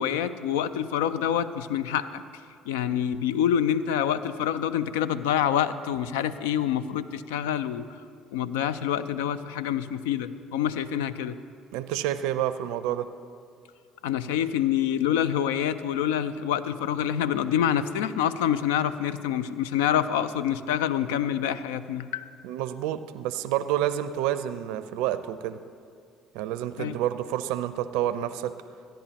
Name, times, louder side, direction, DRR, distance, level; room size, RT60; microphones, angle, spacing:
voice 1, 0.0-2.2 2.7-7.8 8.3-11.3 14.0-22.3 26.8-27.0, left 9 dB, 80° left, 14 dB, 0.3 m, -26 dB
voice 2, 11.7-13.1 22.4-25.6 26.3-28.5, right 12 dB, 75° right, 13 dB, 0.4 m, -29 dB
15.0 x 10.0 x 2.9 m, 2.3 s
hypercardioid pair, 60°, 0 cm